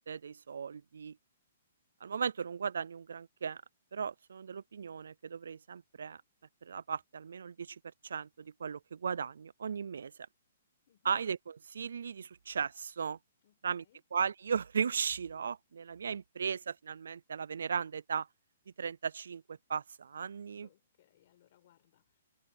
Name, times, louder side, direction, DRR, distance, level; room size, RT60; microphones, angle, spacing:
voice 1, 0.1-1.2 2.0-3.6 3.9-6.2 6.6-10.1 11.1-11.4 11.7-13.2 13.6-13.8 14.1-18.3 18.8-20.7, right 6 dB, 85° right, 0.4 m, -36 dB
voice 2, 10.9-11.2 13.4-14.0 20.5-22.2, left 12 dB, 35° left, 6.0 m, -68 dB
hypercardioid pair, 180°, 0 cm